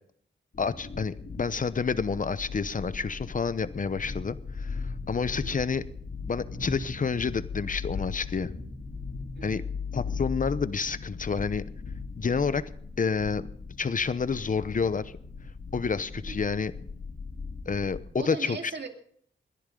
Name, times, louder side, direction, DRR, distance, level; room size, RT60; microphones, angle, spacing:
sound 1, 0.5-18.0, left 4 dB, 60° left, 3.5 m, -38 dB
voice 1, 0.6-5.8 6.3-8.5 9.4-9.6 9.9-11.6 12.2-12.6 13.0-13.5 13.8-15.1 15.7-16.7 17.7-18.6, left 5 dB, 40° left, 14 dB, 0.8 m, -29 dB
voice 2, 9.4-9.7 16.1-16.4 18.1-18.9, right 4 dB, 60° right, 4 dB, 2.3 m, -39 dB
27.0 x 11.0 x 3.9 m, 0.63 s
cardioid pair, 70°, 20 cm